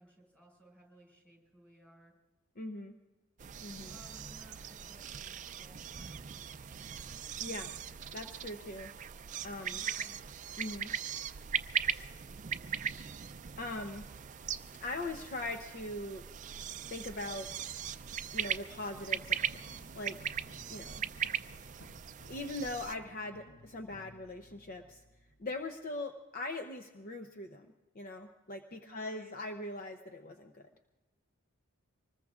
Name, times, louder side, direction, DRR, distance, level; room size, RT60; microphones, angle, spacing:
voice 1, 0.0-2.1 3.8-6.2 9.7-10.2 28.8-29.4, equal, 5° left, 0 dB, 5.2 m, -59 dB
voice 2, 2.6-2.9 3.6-4.0 7.4-7.7 8.1-8.9 9.4-9.8 10.6-10.9 11.8-12.1 13.6-14.4 14.8-16.2 16.9-17.7 18.3-19.4 19.7-20.3 20.7-21.0 22.3-25.0 25.4-30.6, left 2 dB, 45° left, 5 dB, 0.7 m, -41 dB
sound 1, 3.4-22.9, right 8 dB, 35° right, 0.4 m, -39 dB
sound 2, 18.7-25.9, left 1 dB, 60° left, 1.7 m, -58 dB
25.5 x 20.5 x 2.4 m, 1.2 s
head